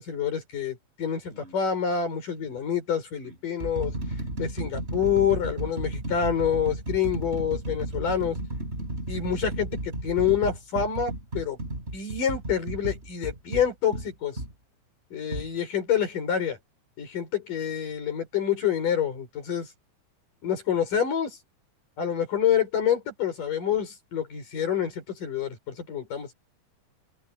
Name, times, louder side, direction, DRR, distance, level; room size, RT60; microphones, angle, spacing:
voice 1, 0.0-3.9 4.4-8.4 9.1-11.6 11.9-14.4 15.1-16.6 17.0-19.7 20.4-21.4 22.0-26.3, left 8 dB, 75° left, 7.2 m, -27 dB
sound 1, 1.3-1.6 2.4-2.6 3.2-14.5 15.3-15.5, right 1 dB, 20° right, 5.9 m, -33 dB
open air
omnidirectional pair, 3.8 m